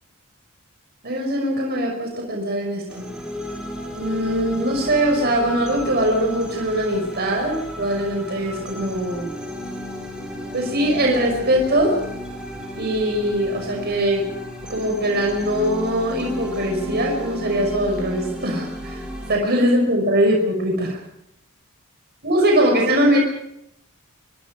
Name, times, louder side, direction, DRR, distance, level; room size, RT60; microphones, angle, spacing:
voice 1, 1.0-3.1 3.9-9.3 10.5-12.0 12.8-14.3 14.7-21.0 22.2-23.2, right 1 dB, 50° right, 0 dB, 5.9 m, -21 dB
sound 1, 2.9-19.3, left 1 dB, 5° right, 6.8 m, -33 dB
25.0 x 24.5 x 5.3 m, 0.80 s
head